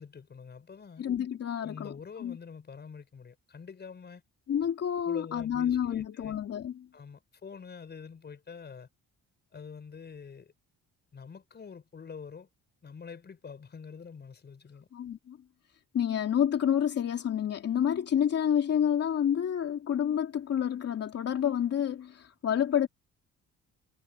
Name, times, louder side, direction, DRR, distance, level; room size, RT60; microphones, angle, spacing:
voice 1, 0.0-1.0 1.6-4.2 5.0-6.4 6.9-8.9 9.5-10.5 11.1-12.5 12.8-14.9, left 6 dB, 30° left, 6.3 m, -46 dB
voice 2, 1.0-1.9 2.2-2.4 4.5-6.9 14.9-15.4 15.9-22.9, left 9 dB, 45° left, 2.9 m, -29 dB
cardioid pair, 175°, 33 cm